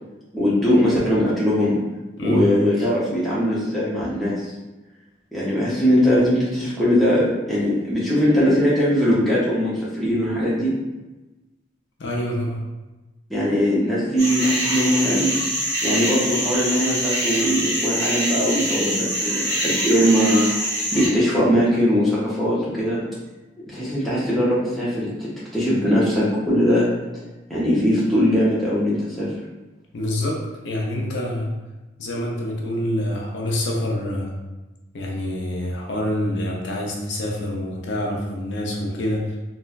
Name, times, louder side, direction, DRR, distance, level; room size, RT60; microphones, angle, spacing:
voice 1, 0.3-1.8 2.2-4.5 5.3-10.7 13.3-15.3 15.8-23.0 23.7-26.9 27.5-29.3, equal, ahead, -9 dB, 0.6 m, -20 dB
voice 2, 12.0-12.6 29.9-31.5 32.0-34.4 34.9-39.4, left 1 dB, 70° left, -2 dB, 0.5 m, -26 dB
sound 1, 14.2-21.1, equal, 60° right, 1.1 m, -24 dB
3.0 x 2.1 x 2.3 m, 1.1 s
head